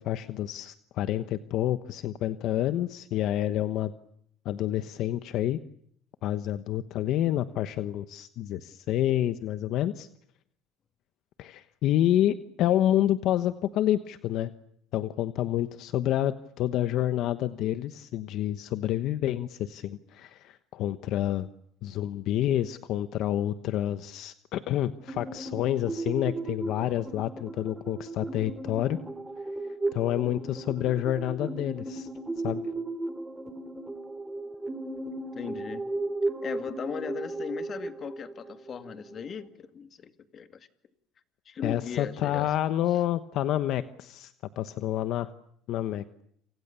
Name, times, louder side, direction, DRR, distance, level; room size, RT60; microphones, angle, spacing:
voice 1, 0.0-3.9 4.4-5.6 6.2-10.1 11.4-14.5 14.9-21.5 21.8-29.0 29.9-32.1 32.4-32.6 41.6-44.3 44.6-45.3 45.7-46.2, left 12 dB, 55° left, 11 dB, 1.1 m, -28 dB
sound 1, 25.1-39.5, right 2 dB, 10° right, 2.8 m, -36 dB
voice 2, 35.1-35.8 36.4-40.7 41.5-42.6 42.9-43.0, left 7 dB, 35° left, 9 dB, 2.1 m, -38 dB
29.0 x 27.5 x 7.0 m, 0.70 s
cardioid pair, 135°, 0 cm